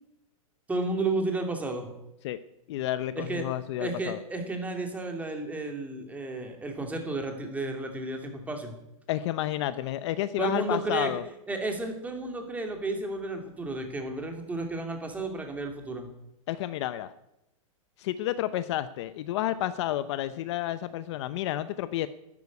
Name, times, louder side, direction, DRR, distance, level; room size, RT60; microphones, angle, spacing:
voice 1, 0.7-1.9 3.1-3.4 3.8-8.7 10.4-11.1 11.5-16.1, right 2 dB, 10° right, 4 dB, 2.6 m, -32 dB
voice 2, 2.7-4.2 9.1-11.2 16.5-17.1 18.0-22.1, left 13 dB, 50° left, 13 dB, 0.8 m, -30 dB
12.5 x 9.4 x 9.6 m, 0.87 s
hypercardioid pair, 145°, 18 cm